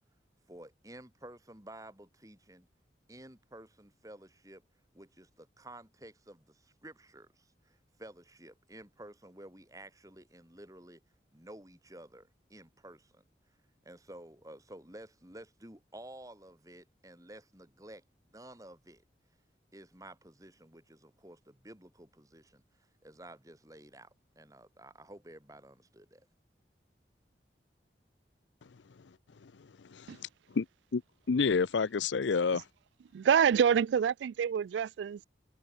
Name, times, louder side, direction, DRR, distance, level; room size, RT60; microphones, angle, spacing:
voice 1, 0.5-2.7 3.1-4.6 4.9-11.0 11.3-13.2 13.8-18.0 18.3-19.0 19.7-22.6 23.0-26.3, right 1 dB, 20° right, 3.4 m, -52 dB
voice 2, 29.9-30.7 30.9-31.0 31.3-32.6, left 5 dB, 90° left, 0.5 m, -29 dB
voice 3, 33.1-35.3, right 8 dB, 80° right, 0.3 m, -26 dB
head